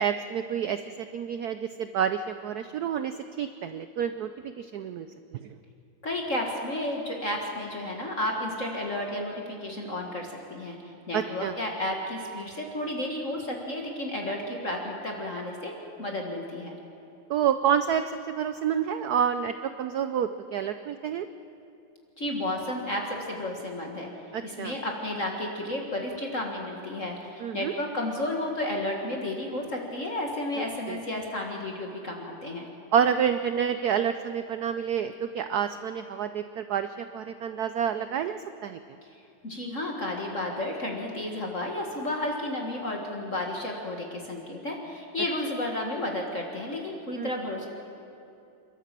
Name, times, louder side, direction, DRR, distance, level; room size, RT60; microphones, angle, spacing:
voice 1, 0.0-5.1 5.3-5.5 11.1-11.5 17.3-21.3 24.3-24.7 27.4-27.7 30.9-31.0 32.9-38.8 47.2-47.3, right 8 dB, 80° right, 10 dB, 0.8 m, -28 dB
voice 2, 6.0-10.8 11.1-16.8 22.2-24.1 24.4-32.7 39.4-47.7, left 1 dB, 40° left, 0 dB, 1.8 m, -32 dB
28.5 x 12.5 x 7.5 m, 2.6 s
omnidirectional pair, 2.4 m